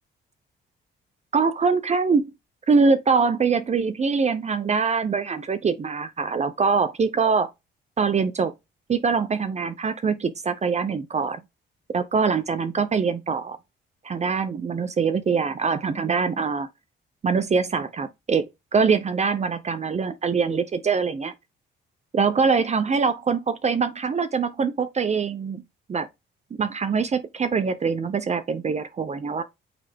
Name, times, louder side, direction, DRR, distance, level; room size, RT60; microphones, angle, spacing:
voice 1, 1.3-2.3 2.7-7.5 8.0-8.5 8.9-11.4 11.9-13.6 14.0-16.7 17.2-18.4 18.7-21.3 22.1-25.6 25.9-26.1 26.6-29.4, right 5 dB, 35° right, 0.7 m, -23 dB
8.8 x 3.4 x 3.6 m
cardioid pair, 90°, 20 cm